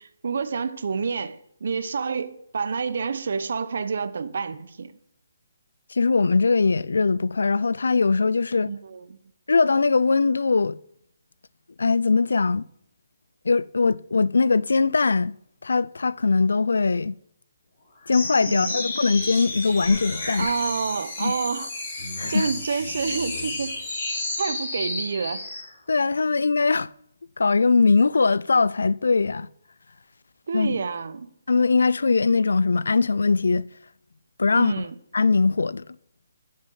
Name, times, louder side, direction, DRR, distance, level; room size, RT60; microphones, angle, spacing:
voice 1, 0.0-4.9 8.7-9.2 18.4-18.8 20.3-21.7 22.3-23.8 24.4-25.4 30.5-31.3 34.5-35.0, right 5 dB, 60° right, 0.8 m, -28 dB
voice 2, 5.9-8.7 9.5-10.8 11.8-12.7 13.5-15.3 15.6-17.2 18.1-20.5 21.2-21.3 22.2-22.5 25.9-26.9 27.4-29.5 30.5-30.8 31.5-33.7 34.4-34.7 35.1-35.8, left 4 dB, 90° left, 0.4 m, -21 dB
sound 1, 18.1-25.7, left 2 dB, 35° left, 4.3 m, -32 dB
10.5 x 6.5 x 5.5 m
hypercardioid pair, 170°, 0 cm